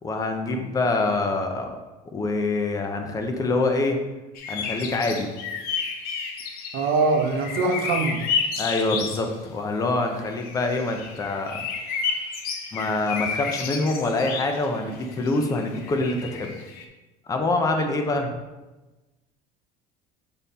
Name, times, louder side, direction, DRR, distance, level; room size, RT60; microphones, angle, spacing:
voice 1, 0.0-1.8 2.1-4.0 4.5-5.3 8.6-11.6 12.7-16.6 17.3-18.3, left 2 dB, 20° left, 4 dB, 0.6 m, -25 dB
sound 1, 4.3-9.3 10.2-16.8, left 5 dB, 55° left, 0.7 m, -31 dB
voice 2, 6.7-8.2 18.2-18.3, right 3 dB, 55° right, 4 dB, 0.9 m, -23 dB
5.5 x 4.3 x 4.1 m, 1.1 s
cardioid pair, 160°, 18 cm